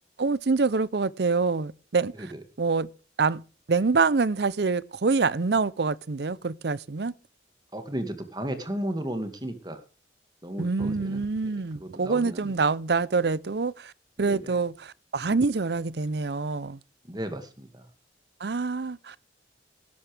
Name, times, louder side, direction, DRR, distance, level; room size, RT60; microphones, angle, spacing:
voice 1, 0.2-2.3 2.6-2.9 3.2-3.4 3.7-7.1 10.6-13.9 14.2-16.8 18.4-19.2, right 4 dB, 65° right, 0.6 m, -26 dB
voice 2, 7.7-9.8 10.4-11.2 11.8-12.5 14.2-14.6 17.1-17.8, right 1 dB, 25° right, 2.1 m, -34 dB
17.5 x 12.5 x 3.4 m
head